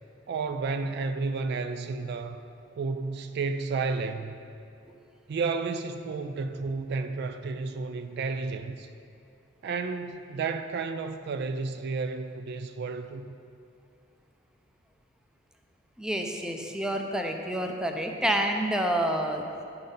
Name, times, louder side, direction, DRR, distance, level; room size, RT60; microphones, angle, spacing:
voice 1, 0.3-2.4 2.8-4.4 5.3-8.9 9.6-13.3, right 4 dB, 60° right, 9 dB, 0.3 m, -32 dB
voice 2, 16.0-19.4, right 1 dB, 5° right, 3 dB, 0.5 m, -28 dB
10.5 x 4.0 x 5.3 m, 2.5 s
head